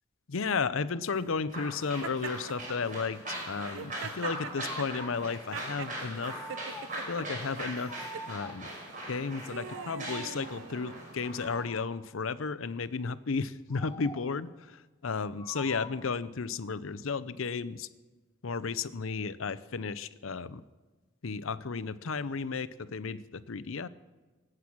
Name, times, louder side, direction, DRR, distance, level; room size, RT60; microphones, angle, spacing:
voice 1, 0.3-6.4 7.1-8.0 8.3-8.7 9.1-17.9 18.4-20.6 21.2-23.9, left 5 dB, 80° left, 16 dB, 0.7 m, -33 dB
sound 1, 1.5-11.7, right 1 dB, 40° right, 5.2 m, -41 dB
Laughter, 2.0-2.8 3.6-6.0 6.5-7.3 8.0-8.3 9.0-11.2, right 7 dB, 70° right, 0.5 m, -43 dB
sound 2, 4.4-5.2 6.2-7.1 7.9-8.8 9.6-10.5 11.4-12.1 13.7-14.4 15.4-16.1, left 1 dB, 10° left, 1.1 m, -46 dB
24.0 x 8.9 x 6.0 m, 1.3 s
head